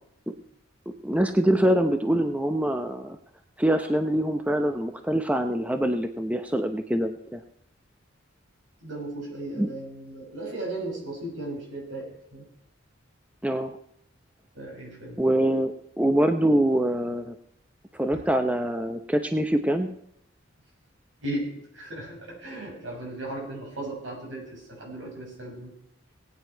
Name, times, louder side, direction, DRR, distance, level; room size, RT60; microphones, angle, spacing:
voice 1, 0.9-3.2 3.6-7.4 9.6-9.7 13.4-13.7 15.2-17.4 17.9-19.9, right 1 dB, 5° right, 7 dB, 0.7 m, -24 dB
voice 2, 8.8-12.5 14.5-15.2 18.1-18.3 21.2-25.7, right 1 dB, 70° right, -2 dB, 6.5 m, -36 dB
18.5 x 9.3 x 4.5 m, 0.76 s
head